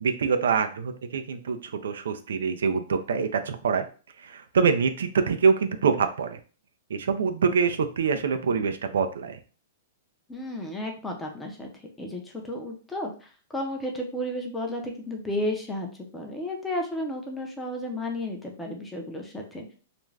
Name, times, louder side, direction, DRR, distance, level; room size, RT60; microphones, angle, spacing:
voice 1, 0.0-3.9 4.2-6.4 6.9-9.4, right 5 dB, 85° right, 8 dB, 0.4 m, -25 dB
voice 2, 10.3-11.7 12.0-19.7, left 1 dB, 10° left, 1 dB, 0.5 m, -33 dB
2.4 x 2.2 x 3.2 m, 0.37 s
hypercardioid pair, 150°, 0 cm